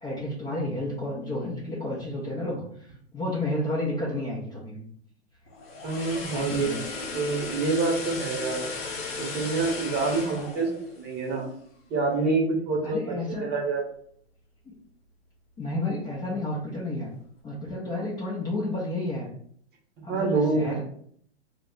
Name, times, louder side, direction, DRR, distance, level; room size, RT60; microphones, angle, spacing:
voice 1, 0.0-4.9 6.3-6.8 10.3-10.5 12.8-13.4 14.7-14.8 15.6-17.1 17.4-19.3 20.0-20.8, left 1 dB, 15° left, -6 dB, 0.4 m, -31 dB
sound 1, 5.5-11.7 12.0-12.2, left 3 dB, 60° left, 0.9 m, -36 dB
voice 2, 5.8-6.7 7.1-8.7 9.2-11.5 11.9-13.8 20.0-20.8, right 3 dB, 30° right, 0 dB, 0.9 m, -27 dB
2.4 x 2.1 x 3.7 m, 0.62 s
hypercardioid pair, 120°, 34 cm